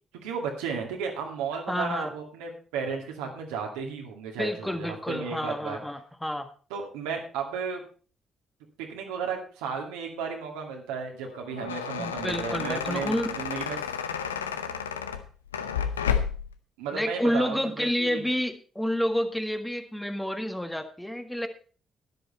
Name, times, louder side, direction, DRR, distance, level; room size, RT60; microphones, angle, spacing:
voice 1, 0.2-5.8 6.7-7.8 8.8-13.9 16.8-18.3, right 6 dB, 75° right, 2 dB, 2.2 m, -34 dB
voice 2, 1.7-2.1 4.4-6.5 12.0-13.3 16.9-21.5, equal, 5° left, 7 dB, 1.6 m, -29 dB
sound 1, 11.3-16.5, left 7 dB, 90° left, 0.6 m, -31 dB
12.0 x 10.5 x 4.2 m, 0.39 s
hypercardioid pair, 45°, 0 cm